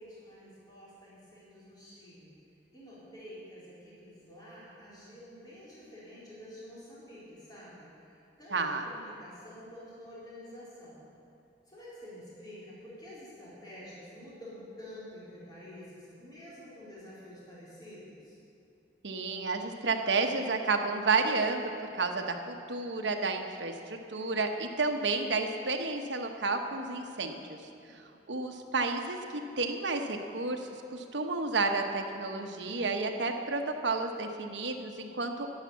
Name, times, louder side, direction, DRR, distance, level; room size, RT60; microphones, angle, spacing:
voice 1, 0.0-2.3 2.7-11.0 11.7-18.4 27.8-27.9, left 1 dB, 25° left, -9 dB, 4.1 m, -49 dB
voice 2, 8.5-8.8 19.0-27.6 27.9-28.0 28.3-35.6, right 3 dB, 70° right, 4 dB, 1.1 m, -31 dB
11.5 x 11.0 x 7.1 m, 2.6 s
head